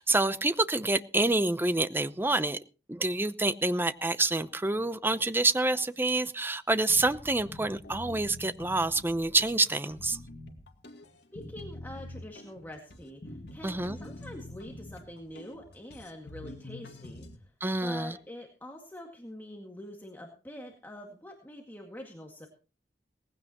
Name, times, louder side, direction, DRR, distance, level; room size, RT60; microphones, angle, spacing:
voice 1, 0.0-2.6 2.9-10.2 13.6-14.0 17.6-18.1, right 2 dB, 10° right, 0.7 m, -27 dB
sound 1, 6.9-17.4, left 1 dB, 70° left, 2.1 m, -46 dB
voice 2, 11.3-17.5 17.8-22.5, left 1 dB, 10° left, 2.0 m, -45 dB
19.0 x 15.5 x 3.0 m
head